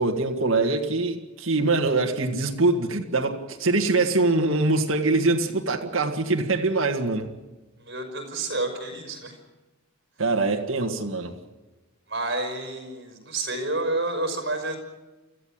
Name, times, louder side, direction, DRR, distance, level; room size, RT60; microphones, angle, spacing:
voice 1, 0.0-7.3 10.2-11.3, right 3 dB, 65° right, 1.9 m, -23 dB
voice 2, 7.8-9.4 12.1-14.8, right 2 dB, 50° right, 5.5 m, -29 dB
25.5 x 15.0 x 8.8 m
head